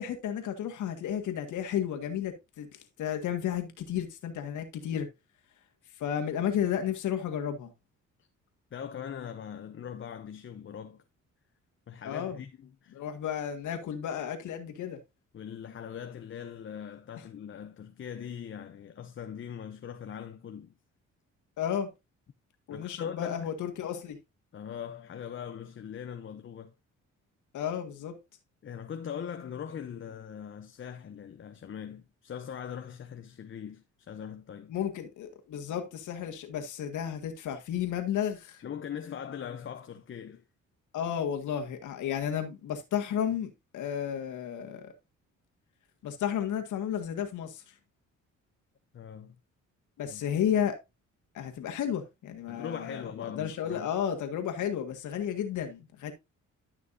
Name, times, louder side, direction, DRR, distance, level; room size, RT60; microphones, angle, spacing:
voice 1, 0.0-2.7 3.0-5.1 6.0-7.7 12.0-12.4 12.9-15.0 21.6-21.9 22.7-24.2 27.5-28.2 34.7-38.6 40.9-44.9 46.0-47.6 50.0-50.8 51.3-56.1, left 9 dB, 80° left, 1.8 m, -32 dB
voice 2, 8.7-11.0 11.9-13.0 15.3-20.7 22.7-23.5 24.5-26.7 28.6-34.7 38.6-40.4 48.9-49.4 50.0-50.2 52.5-53.9, left 8 dB, 40° left, 0.8 m, -41 dB
12.5 x 5.9 x 2.7 m
cardioid pair, 90°, 30 cm